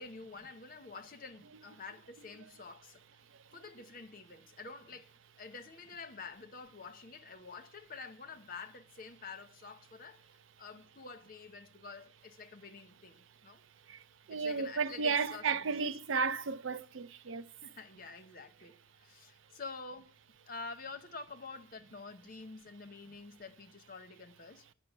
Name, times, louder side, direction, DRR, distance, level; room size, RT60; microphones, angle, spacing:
voice 1, 0.0-3.0 3.5-5.1 5.4-10.2 10.6-13.6 14.3-15.9 17.6-20.2 20.5-24.7, left 4 dB, 45° left, 0.9 m, -48 dB
voice 2, 13.9-17.5, right 5 dB, 75° right, 0.5 m, -34 dB
9.6 x 5.6 x 8.3 m
head